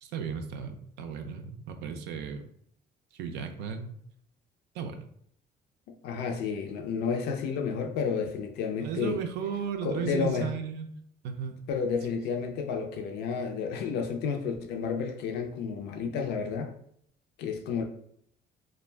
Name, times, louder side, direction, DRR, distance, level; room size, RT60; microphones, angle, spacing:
voice 1, 0.0-2.5 3.1-4.0 4.7-5.0 8.8-10.9 11.2-11.6, right 7 dB, 85° right, 6 dB, 0.4 m, -35 dB
voice 2, 6.0-9.2 9.8-10.5 11.7-16.7 17.4-17.8, left 6 dB, 80° left, 3 dB, 0.4 m, -31 dB
2.4 x 2.1 x 3.2 m, 0.67 s
cardioid pair, 110°, 17 cm